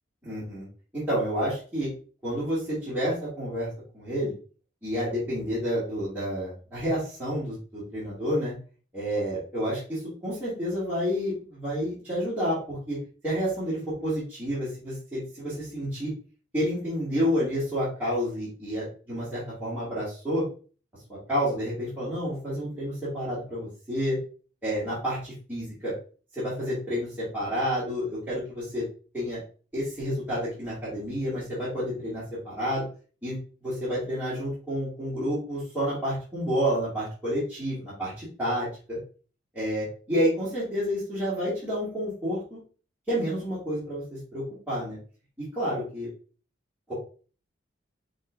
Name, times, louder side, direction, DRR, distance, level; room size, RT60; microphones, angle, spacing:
voice 1, 0.2-0.6 0.9-1.9 2.2-3.7 3.9-4.3 4.8-8.5 8.9-13.0 13.2-16.1 16.5-20.5 21.3-24.2 24.6-25.9 26.3-28.8 29.1-29.4 29.7-32.8 33.2-33.4 33.6-39.0 39.5-42.6 43.1-44.0 44.3-45.0 45.5-46.1 46.9-47.0, equal, 10° right, -12 dB, 2.3 m, -29 dB
6.1 x 3.3 x 2.6 m, 0.39 s
head